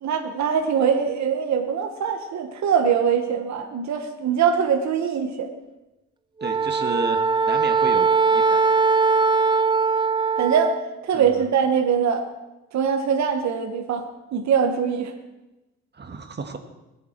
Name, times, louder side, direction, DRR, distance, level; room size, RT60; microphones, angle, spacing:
voice 1, 0.0-5.5 10.4-12.3 12.7-15.1, right 7 dB, 65° right, 4 dB, 1.3 m, -23 dB
Wind instrument woodwind instrument, 6.4-10.8, right 4 dB, 15° right, 0.5 m, -20 dB
voice 2, 6.4-7.2 7.5-8.8 11.1-11.4 15.9-16.6, right 4 dB, 35° right, 7 dB, 1.6 m, -32 dB
21.0 x 7.3 x 4.5 m, 1.0 s
cardioid pair, 90°, 30 cm